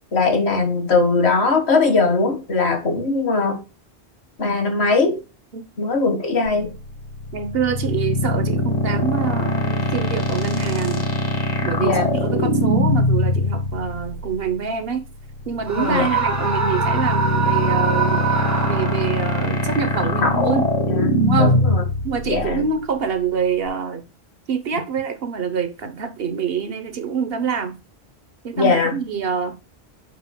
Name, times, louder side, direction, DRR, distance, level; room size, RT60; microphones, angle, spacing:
voice 1, 0.1-3.6 4.4-5.2 5.8-6.7 11.8-12.1 15.8-16.2 20.2-20.6 20.9-21.8 22.3-22.7 28.6-28.9, left 3 dB, 80° left, 2.0 m, -20 dB
sound 1, 6.5-23.7, left 1 dB, 40° left, 1.5 m, -22 dB
voice 2, 7.3-11.1 11.6-15.0 15.5-18.2 18.6-20.7 21.2-21.6 22.0-24.1 24.5-27.8 28.4-29.6, right 6 dB, 65° right, 1.2 m, -26 dB
Screaming, 15.7-19.3, right 5 dB, 15° right, 0.9 m, -23 dB
6.6 x 6.4 x 2.2 m
omnidirectional pair, 1.1 m